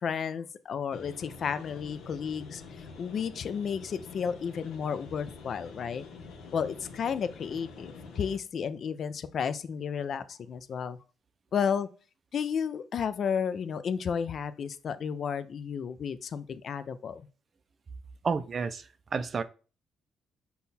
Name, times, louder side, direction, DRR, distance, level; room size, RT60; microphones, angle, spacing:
voice 1, 0.0-6.0 6.5-11.0 11.5-11.9 12.3-17.2, left 7 dB, 55° left, 0.4 m, -32 dB
sound 1, 0.9-8.4, left 4 dB, 85° left, 0.9 m, -47 dB
voice 2, 18.2-18.8 19.1-19.4, right 5 dB, 40° right, 0.4 m, -30 dB
5.5 x 2.3 x 4.1 m
cardioid pair, 90°, 0 cm